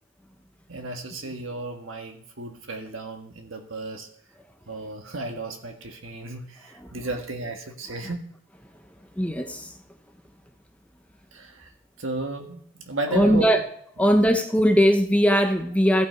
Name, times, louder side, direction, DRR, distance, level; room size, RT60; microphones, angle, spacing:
voice 1, 0.7-4.1 4.7-8.2 11.3-11.7 12.0-13.6, right 2 dB, 70° right, 4 dB, 1.6 m, -33 dB
voice 2, 9.2-9.7 13.1-13.6 14.0-16.1, equal, 5° left, 5 dB, 0.7 m, -20 dB
15.0 x 5.9 x 4.5 m, 0.66 s
head